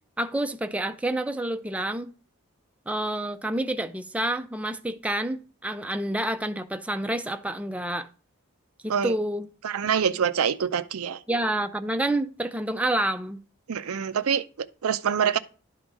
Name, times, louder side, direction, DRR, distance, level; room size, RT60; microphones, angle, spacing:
voice 1, 0.2-2.1 2.9-8.1 8.8-9.5 11.3-13.4, right 1 dB, 5° right, 0.4 m, -28 dB
voice 2, 9.6-11.2 13.7-15.4, right 7 dB, 90° right, 0.5 m, -25 dB
11.5 x 3.9 x 4.7 m
head